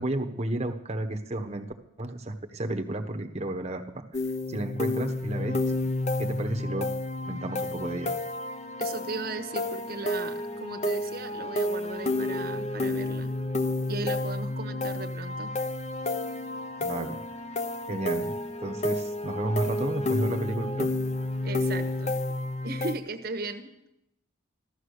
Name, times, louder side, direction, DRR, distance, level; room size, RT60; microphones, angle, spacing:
voice 1, 0.0-1.7 2.0-4.2 4.5-5.8 6.2-6.9 7.3-8.2 16.8-17.2 17.9-18.3 18.6-20.9, right 1 dB, 30° right, 5 dB, 1.1 m, -32 dB
sound 1, 4.1-22.9, left 1 dB, 35° left, 0.8 m, -30 dB
voice 2, 8.8-13.3 13.9-15.5 21.4-22.1 22.6-23.7, right 3 dB, 50° right, 7 dB, 1.3 m, -37 dB
15.0 x 13.0 x 6.7 m, 0.85 s
head